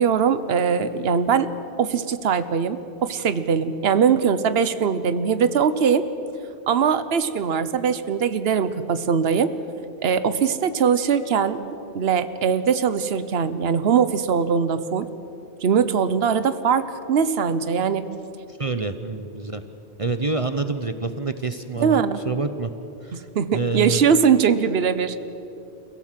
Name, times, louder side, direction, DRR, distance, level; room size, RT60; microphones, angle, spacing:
voice 1, 0.0-1.5 1.8-6.0 6.7-9.5 10.0-11.6 11.9-15.1 15.6-18.1 21.8-22.2 23.1-25.1, right 7 dB, 65° right, 12 dB, 1.2 m, -21 dB
voice 2, 18.5-19.6 20.0-22.7 23.0-23.3 23.5-24.1, right 3 dB, 35° right, 9 dB, 0.8 m, -27 dB
29.0 x 17.0 x 7.6 m, 2.8 s
omnidirectional pair, 1.1 m